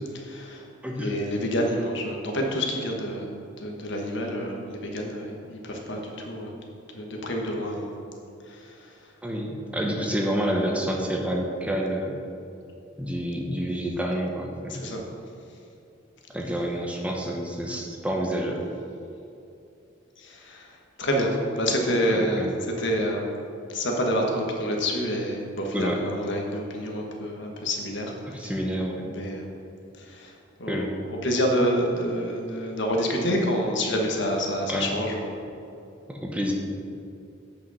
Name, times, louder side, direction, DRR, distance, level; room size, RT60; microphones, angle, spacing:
voice 1, 0.1-0.6 1.0-6.5 6.9-7.9 8.5-8.7 14.7-15.0 20.2-20.7 21.0-22.5 22.8-23.3 23.7-28.1 28.4-28.5 29.0-29.5 30.0-30.3 30.6-35.4, equal, 65° left, 1 dB, 1.3 m, -28 dB
voice 2, 0.8-1.2 9.2-12.2 13.0-14.8 16.3-18.6 22.1-22.5 25.7-26.0 28.3-29.1 30.7-30.9 34.7-34.9 36.1-36.5, equal, 5° right, 0 dB, 0.8 m, -28 dB
8.5 x 5.6 x 5.5 m, 2.6 s
head